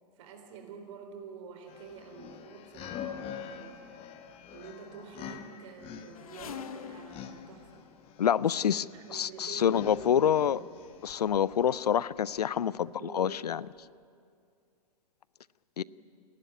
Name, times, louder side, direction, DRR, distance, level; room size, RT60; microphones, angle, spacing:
voice 1, 0.2-3.9 4.5-7.9 8.5-10.7 12.6-13.4 15.8-15.9, right 5 dB, 50° right, 5 dB, 4.0 m, -48 dB
sound 1, 1.7-11.7, left 8 dB, 30° left, 1.3 m, -46 dB
sound 2, 6.1-8.6 9.6-9.8 10.6-10.7 10.9-11.8 12.1-12.6 13.3-13.4 13.8-13.9, left 8 dB, 60° left, 1.2 m, -47 dB
voice 2, 8.2-10.6 11.0-13.6 15.8-15.9, left 9 dB, 75° left, 22 dB, 0.5 m, -27 dB
27.5 x 12.0 x 9.4 m, 2.3 s
figure-of-eight pair, 115°, 20 cm